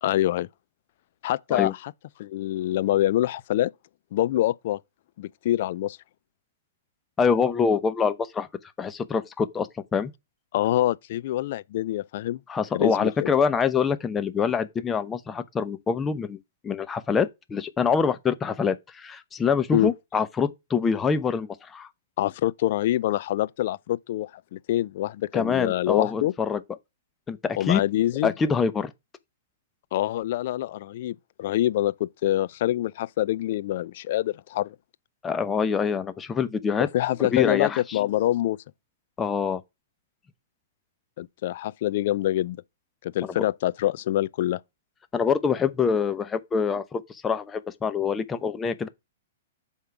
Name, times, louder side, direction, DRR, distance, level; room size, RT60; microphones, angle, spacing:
voice 1, 0.0-0.5 1.2-1.9 2.2-3.7 4.1-4.8 5.2-6.0 10.5-12.4 12.7-13.3 19.7-19.9 22.2-26.3 27.6-28.3 29.9-34.7 36.8-38.6 41.2-42.6 43.0-44.6, left 14 dB, 55° left, 0.4 m, -25 dB
voice 2, 7.2-8.5 8.8-10.1 12.5-16.4 16.6-21.9 25.3-26.6 27.3-27.8 28.2-28.9 35.2-36.9 37.2-38.0 39.2-39.6 43.4-43.5 45.1-48.9, left 6 dB, 20° left, 0.8 m, -25 dB
7.9 x 3.7 x 5.8 m
hypercardioid pair, 115°, 0 cm